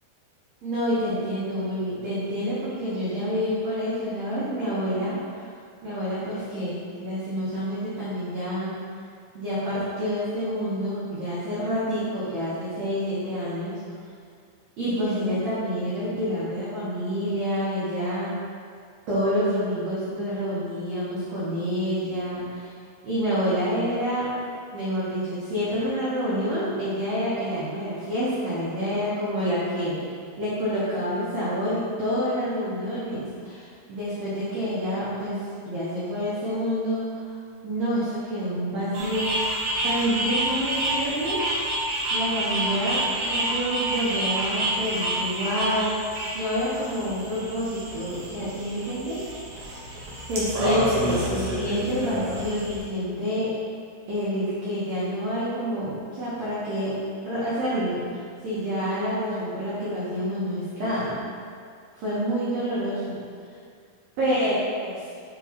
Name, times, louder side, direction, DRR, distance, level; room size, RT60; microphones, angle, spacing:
voice 1, 0.6-5.5 5.8-8.8 9.3-13.8 14.8-18.4 19.1-22.7 23.0-24.3 24.7-30.1 30.4-37.3 37.6-39.3 39.8-41.5 42.1-46.0 46.3-49.2 50.3-53.5 54.1-57.0 57.2-61.2 61.9-63.2 64.2-64.5 64.8-64.9, equal, 90° right, -10 dB, 1.4 m, -28 dB
sound 1, 38.9-52.8, right 1 dB, 70° right, 2.0 m, -29 dB
7.8 x 4.1 x 2.9 m, 2.2 s
omnidirectional pair, 4.8 m